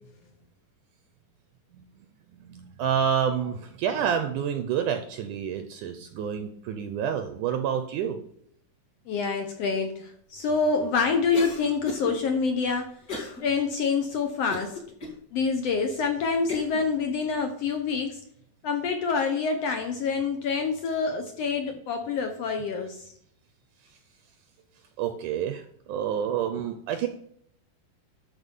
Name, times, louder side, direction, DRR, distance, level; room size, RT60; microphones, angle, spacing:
voice 1, 2.4-8.2 25.0-27.1, right 8 dB, 80° right, 8 dB, 1.9 m, -28 dB
voice 2, 9.1-12.9 13.4-14.8 15.3-18.2 18.6-23.0, left 5 dB, 80° left, 5 dB, 1.4 m, -26 dB
Cough, 11.3-12.1 13.1-13.4 13.9-14.0 14.5-15.2 15.8-15.9 16.5-16.8, left 3 dB, 30° left, 1.9 m, -35 dB
12.5 x 4.8 x 5.4 m, 0.68 s
omnidirectional pair, 4.2 m